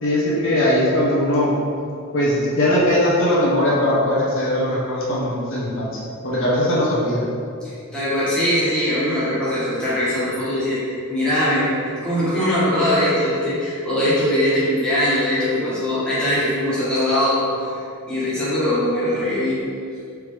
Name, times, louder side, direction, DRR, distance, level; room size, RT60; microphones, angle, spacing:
voice 1, 0.0-1.5 2.1-5.9 6.2-7.3, left 1 dB, 60° left, -6 dB, 0.8 m, -20 dB
voice 2, 7.6-17.4 17.7-19.6, left 1 dB, 5° left, -12 dB, 1.3 m, -21 dB
4.4 x 3.4 x 3.2 m, 2.4 s
head